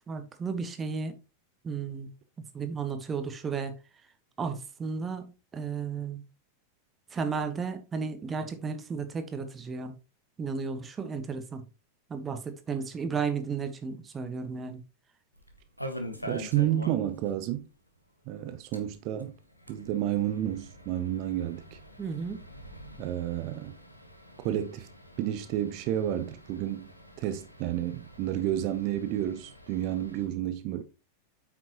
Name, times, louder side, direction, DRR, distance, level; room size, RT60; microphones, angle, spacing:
voice 1, 0.1-1.2 1.6-2.1 2.5-3.7 4.4-6.2 7.1-9.9 10.4-11.6 12.1-14.8 22.0-22.4, right 5 dB, 20° right, 1.3 m, -33 dB
sound 1, 15.3-17.3 17.6-17.7 18.0-18.1 18.6-30.3, equal, 90° left, 1.2 m, -46 dB
voice 2, 16.2-17.7 18.3-19.4 19.7-21.8 23.0-23.8 24.4-24.9 25.2-26.9 27.2-30.8, right 12 dB, 40° right, 0.7 m, -30 dB
8.6 x 6.0 x 3.0 m
figure-of-eight pair, 90°, 0 cm